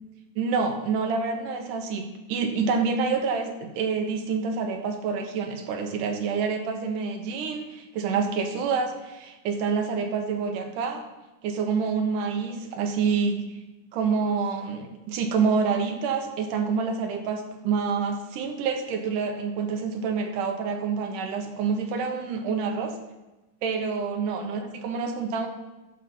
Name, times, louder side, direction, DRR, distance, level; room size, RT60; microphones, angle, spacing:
voice 1, 0.4-11.0 11.4-13.4 13.9-23.0 23.6-25.5, right 5 dB, 85° right, 4 dB, 2.5 m, -27 dB
11.5 x 6.4 x 4.3 m, 1.1 s
omnidirectional pair, 3.7 m